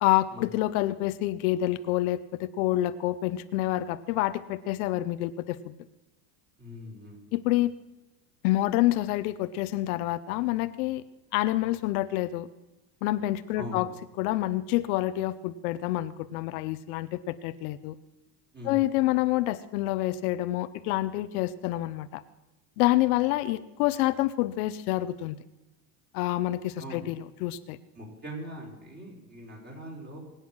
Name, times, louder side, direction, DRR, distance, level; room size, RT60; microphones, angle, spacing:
voice 1, 0.0-5.7 7.3-7.7 8.4-11.0 11.3-12.5 13.0-13.9 14.2-17.9 18.6-22.2 22.8-25.4 26.1-27.8, left 16 dB, 70° left, 12 dB, 0.9 m, -27 dB
voice 2, 6.6-7.3 13.5-13.9 18.5-18.9 26.8-27.1 27.9-30.2, equal, 20° right, -1 dB, 5.7 m, -41 dB
23.5 x 9.4 x 6.3 m, 1.0 s
supercardioid pair, 140°, 46 cm